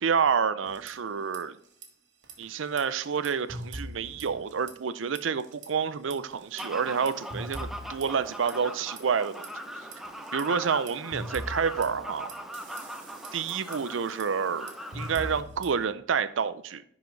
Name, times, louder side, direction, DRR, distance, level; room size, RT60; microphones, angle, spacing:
voice 1, 0.0-1.5 2.4-9.5 10.3-12.3 13.3-16.8, right 6 dB, 80° right, 0.5 m, -29 dB
sound 1, 0.6-1.4 1.7-1.9 2.2-4.9 5.2-5.7 6.1-9.5 9.9-15.9, right 1 dB, 60° right, 1.7 m, -43 dB
Fowl, 6.6-15.4, equal, ahead, 0.7 m, -40 dB
10.5 x 4.9 x 3.9 m
head